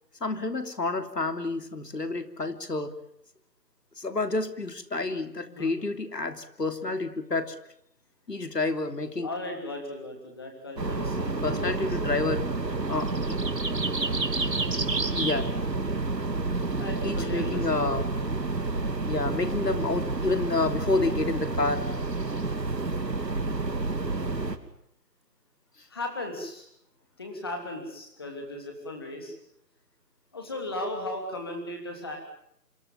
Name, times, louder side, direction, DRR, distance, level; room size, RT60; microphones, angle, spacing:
voice 1, 0.2-2.9 4.0-7.5 8.3-9.3 11.4-12.4 12.9-13.4 15.1-15.5 17.0-18.1 19.1-21.9, left 3 dB, 75° left, 9 dB, 3.2 m, -29 dB
voice 2, 5.4-5.7 9.2-12.0 16.7-18.1 24.0-24.4 25.9-26.7 27.2-29.3 30.3-32.2, left 1 dB, 15° left, 2 dB, 3.1 m, -36 dB
sound 1, 10.8-24.6, right 3 dB, 80° right, 3.1 m, -29 dB
26.5 x 22.5 x 7.4 m, 0.73 s
figure-of-eight pair, 175°, 49 cm